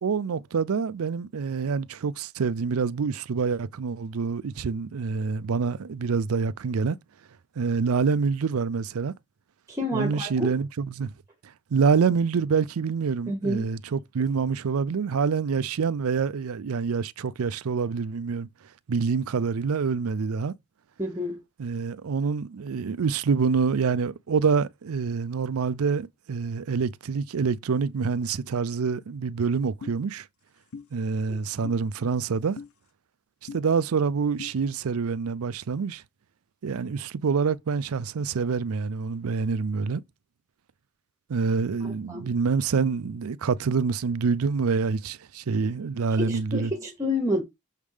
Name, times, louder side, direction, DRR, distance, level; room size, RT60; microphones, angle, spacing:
voice 1, 0.0-7.0 7.6-9.1 9.9-11.1 11.7-18.5 18.9-20.5 21.6-30.3 30.9-32.6 33.5-36.0 36.6-40.0 41.3-46.7, right 5 dB, 90° right, 0.5 m, -26 dB
voice 2, 9.7-10.5 13.3-13.8 21.0-21.4 31.3-31.4 41.8-42.3 46.2-47.4, left 1 dB, 15° right, 1.2 m, -29 dB
sound 1, 29.8-30.0 30.7-30.9 31.6-31.8 32.6-32.7 33.5-33.6 34.4-34.5, left 5 dB, 80° left, 0.6 m, -39 dB
6.4 x 3.5 x 4.9 m
head